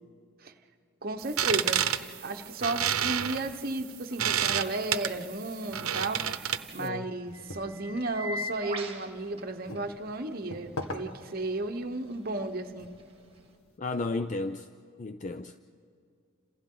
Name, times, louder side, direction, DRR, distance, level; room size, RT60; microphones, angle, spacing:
sound 1, 1.0-13.6, equal, 25° right, 1.8 m, -46 dB
voice 1, 1.0-1.8 2.2-6.2 6.7-12.9, right 2 dB, 45° right, 1.0 m, -33 dB
sound 2, 1.2-6.9, right 9 dB, 90° right, 0.8 m, -30 dB
sound 3, 7.2-13.8, left 1 dB, 85° left, 1.7 m, -45 dB
voice 2, 13.8-14.7 15.0-15.8, left 3 dB, 35° left, 0.4 m, -33 dB
29.5 x 27.5 x 3.8 m
head